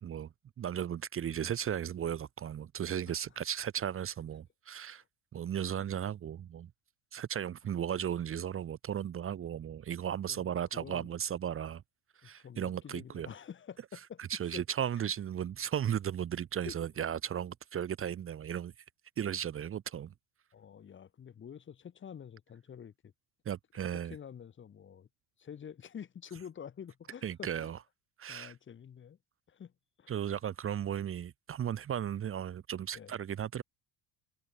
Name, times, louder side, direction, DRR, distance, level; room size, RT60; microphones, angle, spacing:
voice 1, 0.0-5.0 5.3-6.7 7.1-11.8 12.2-13.3 14.2-18.7 19.2-20.1 23.5-24.2 27.2-27.8 28.2-28.5 30.1-33.6, right 9 dB, 30° right, 2.4 m, -35 dB
voice 2, 10.3-11.1 12.4-14.2 14.5-14.6 15.0-15.1 16.7-16.8 20.5-23.1 24.1-25.1 25.4-27.7 28.3-29.2 29.5-29.7 30.0-30.2 32.9-33.1, left 8 dB, 25° left, 4.4 m, -48 dB
cardioid pair, 180°, 44 cm